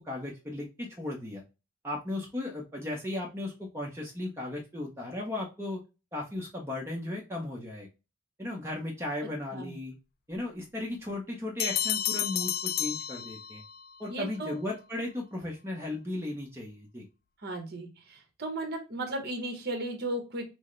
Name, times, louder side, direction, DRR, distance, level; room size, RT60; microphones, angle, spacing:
voice 1, 0.0-1.4 1.8-5.8 6.1-7.9 8.4-9.9 10.3-13.6 14.0-17.0, left 1 dB, 10° right, -2 dB, 0.8 m, -36 dB
voice 2, 9.2-9.7 14.1-14.6 17.4-20.4, right 1 dB, 50° right, 3 dB, 1.2 m, -36 dB
sound 1, 11.6-13.8, left 10 dB, 45° left, 0.3 m, -31 dB
6.1 x 2.1 x 3.1 m, 0.28 s
head